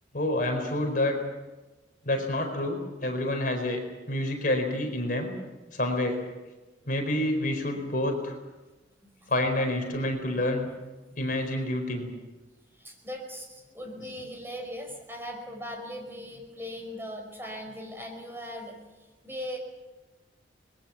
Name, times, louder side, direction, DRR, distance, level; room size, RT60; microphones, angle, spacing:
voice 1, 0.1-1.2 2.0-3.8 4.1-5.3 5.7-6.2 6.9-8.4 9.3-10.7 11.2-12.1, left 1 dB, 45° left, 4 dB, 4.4 m, -28 dB
voice 2, 11.3-11.6 12.7-19.6, equal, 10° right, 2 dB, 5.1 m, -39 dB
25.5 x 21.0 x 7.3 m, 1.1 s
head